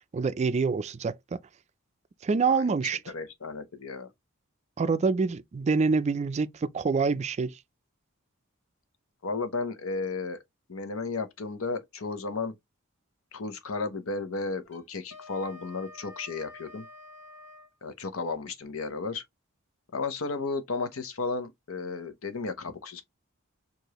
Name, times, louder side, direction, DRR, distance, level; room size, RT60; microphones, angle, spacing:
voice 1, 0.1-1.4 2.2-3.0 4.8-7.6, right 4 dB, 30° right, 0.3 m, -26 dB
voice 2, 3.1-4.1 9.2-10.4 10.7-12.5 13.3-16.9 17.8-19.2 19.9-23.0, left 3 dB, 85° left, 0.9 m, -33 dB
Wind instrument woodwind instrument, 14.6-17.7, left 2 dB, 55° left, 1.6 m, -48 dB
4.9 x 2.6 x 2.9 m
head